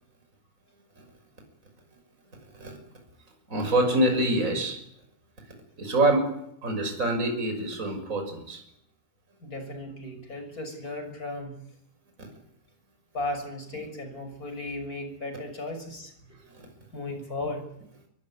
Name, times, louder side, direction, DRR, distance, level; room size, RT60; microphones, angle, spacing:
voice 1, 3.5-4.8 5.8-6.3 6.6-8.6 12.2-12.3, right 1 dB, 20° right, 4 dB, 6.3 m, -25 dB
voice 2, 9.4-11.6 13.1-16.1 16.9-17.6, left 2 dB, 25° left, 7 dB, 6.5 m, -35 dB
25.0 x 23.0 x 9.8 m, 0.75 s
omnidirectional pair, 4.1 m